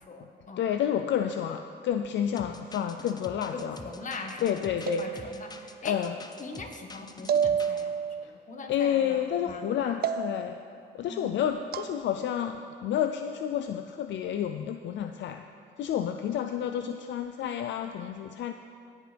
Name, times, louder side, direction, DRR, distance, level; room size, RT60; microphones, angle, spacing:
voice 1, 0.0-0.6 3.5-4.5 5.0-6.0 6.4-9.2 9.4-10.1 11.1-11.4, left 3 dB, 40° left, 3 dB, 1.3 m, -41 dB
voice 2, 0.6-3.8 4.4-5.4 5.8-6.2 8.7-10.6 10.9-15.4 15.8-18.5, left 9 dB, 70° left, 7 dB, 0.4 m, -30 dB
sound 1, 2.4-7.8, left 3 dB, 20° left, 0.6 m, -46 dB
sound 2, 4.9-5.7 7.3-8.2 10.0-10.7 11.7-11.9, right 8 dB, 50° right, 0.4 m, -29 dB
16.0 x 8.1 x 3.4 m, 2.4 s
cardioid pair, 90°, 20 cm